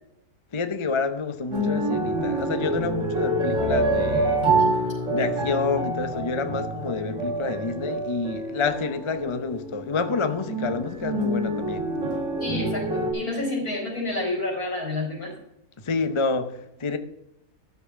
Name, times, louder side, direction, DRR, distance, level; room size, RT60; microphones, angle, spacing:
voice 1, 0.5-4.5 5.1-11.9 15.8-17.0, left 4 dB, 30° left, 0.5 m, -28 dB
sound 1, 1.5-13.1, right 1 dB, 55° right, 4.2 m, -27 dB
voice 2, 12.4-15.3, left 2 dB, 70° left, 4.7 m, -29 dB
12.0 x 6.8 x 6.8 m
omnidirectional pair, 1.6 m